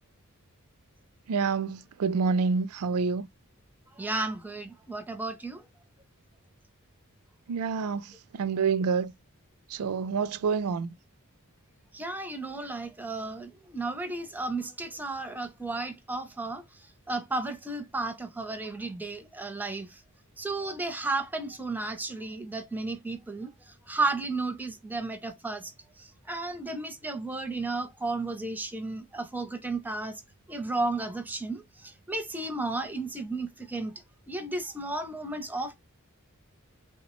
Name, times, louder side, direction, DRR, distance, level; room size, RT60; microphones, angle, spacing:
voice 1, 1.3-3.3 7.5-9.1 9.7-10.9, right 5 dB, 80° right, 0.4 m, -28 dB
voice 2, 4.0-5.6 11.9-16.6 17.1-20.0 20.4-23.5 23.9-25.7 26.0-30.2 30.5-33.9 34.3-35.7, right 2 dB, 10° right, 0.4 m, -33 dB
3.2 x 2.0 x 2.9 m
head